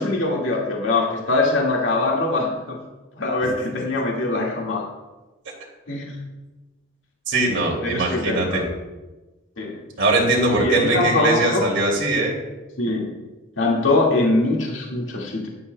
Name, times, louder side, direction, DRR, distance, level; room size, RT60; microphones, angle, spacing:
voice 1, 0.0-2.8 3.2-4.8 5.9-6.2 7.8-8.6 9.6-9.8 10.5-11.7 12.8-13.1 13.6-15.5, left 2 dB, 80° left, -2 dB, 1.9 m, -22 dB
voice 2, 7.3-8.6 10.0-12.3, right 2 dB, 70° right, -2 dB, 2.6 m, -21 dB
15.0 x 11.5 x 2.2 m, 1.1 s
head